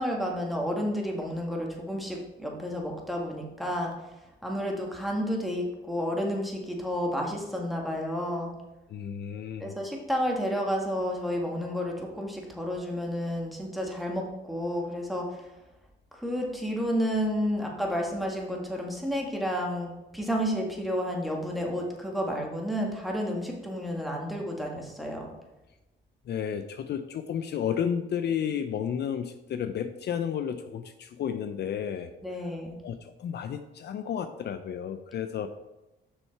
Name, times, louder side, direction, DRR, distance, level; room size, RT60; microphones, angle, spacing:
voice 1, 0.0-3.9 4.4-8.5 9.6-15.4 16.1-25.3 32.2-32.8, equal, ahead, -1 dB, 1.8 m, -31 dB
voice 2, 8.9-9.7 26.3-32.1 32.8-35.5, left 8 dB, 60° left, 9 dB, 0.5 m, -32 dB
6.4 x 6.1 x 4.6 m, 0.99 s
cardioid pair, 90°, 20 cm